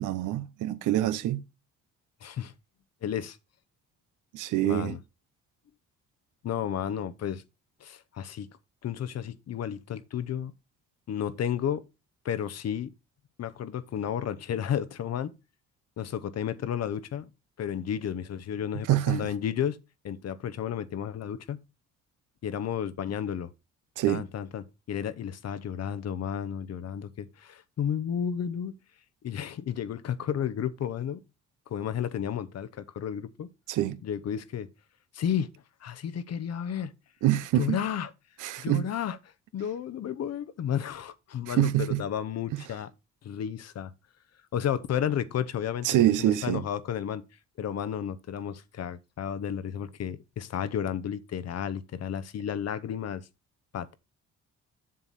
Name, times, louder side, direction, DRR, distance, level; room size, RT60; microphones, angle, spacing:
voice 1, 0.0-1.4 4.3-5.0 18.9-19.3 24.0-24.2 33.7-34.0 37.2-37.8 38.4-38.9 41.5-42.0 42.5-42.6 45.8-46.6, right 13 dB, 85° right, 0.8 m, -25 dB
voice 2, 2.2-2.5 3.0-3.4 4.6-5.0 6.4-7.4 7.8-8.5 8.8-10.5 11.1-11.8 12.2-12.9 13.4-15.4 16.0-17.3 17.6-19.8 20.0-21.6 22.4-23.5 24.1-28.8 29.2-31.2 31.7-33.5 34.0-34.7 35.1-35.5 35.8-36.9 37.5-38.1 38.6-39.2 39.5-42.9 43.2-43.9 44.5-47.2 47.6-53.3 53.7-53.9, left 9 dB, 55° left, 0.8 m, -32 dB
7.5 x 6.9 x 4.1 m
cardioid pair, 90°, 30 cm